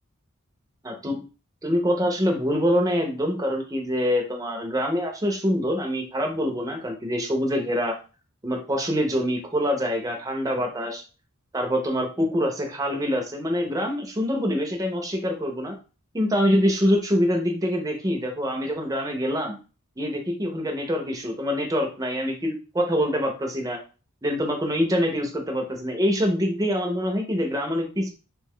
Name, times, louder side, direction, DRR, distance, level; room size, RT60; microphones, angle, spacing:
voice 1, 0.8-1.2 1.6-8.0 8.4-11.0 11.5-15.8 16.1-19.6 20.0-23.8 24.2-28.1, equal, 15° right, 1 dB, 0.6 m, -25 dB
2.9 x 2.2 x 3.5 m, 0.34 s
head